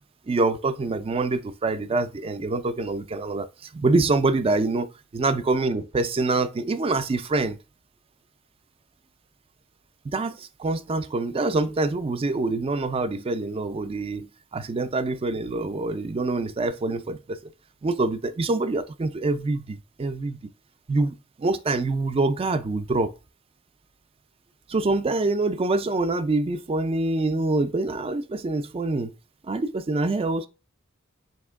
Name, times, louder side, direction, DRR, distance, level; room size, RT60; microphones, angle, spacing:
voice 1, 0.3-4.9 5.1-7.6 10.1-14.3 14.5-17.5 17.8-20.4 20.9-23.1 24.7-29.1 29.5-30.5, right 3 dB, 30° right, 0.4 m, -25 dB
5.0 x 2.8 x 3.5 m
head